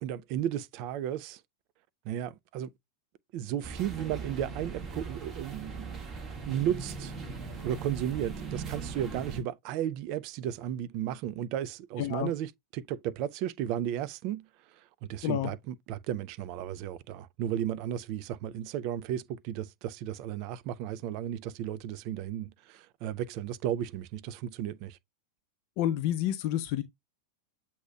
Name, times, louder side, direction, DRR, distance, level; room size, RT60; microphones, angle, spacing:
voice 1, 0.0-1.4 2.1-2.7 3.3-6.1 6.5-7.1 7.6-14.4 15.1-25.0, right 11 dB, 45° right, 0.4 m, -34 dB
sound 1, 3.6-9.4, right 4 dB, 25° right, 1.7 m, -39 dB
voice 2, 12.0-12.3 15.2-15.5 25.8-26.8, left 12 dB, 45° left, 0.5 m, -29 dB
7.9 x 2.8 x 2.3 m
figure-of-eight pair, 90°, 0 cm